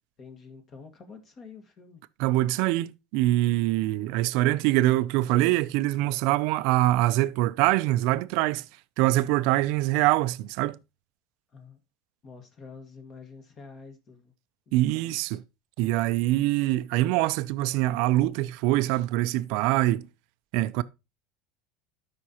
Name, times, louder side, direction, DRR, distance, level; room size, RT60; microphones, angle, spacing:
voice 1, 0.2-2.0 11.5-11.8 12.2-14.3 14.7-15.4, left 4 dB, 35° left, 1.7 m, -48 dB
voice 2, 2.2-8.7 9.0-10.8 14.7-15.4 15.8-20.1 20.5-20.8, right 16 dB, 65° right, 0.5 m, -24 dB
13.0 x 5.3 x 2.9 m
supercardioid pair, 135°, 0 cm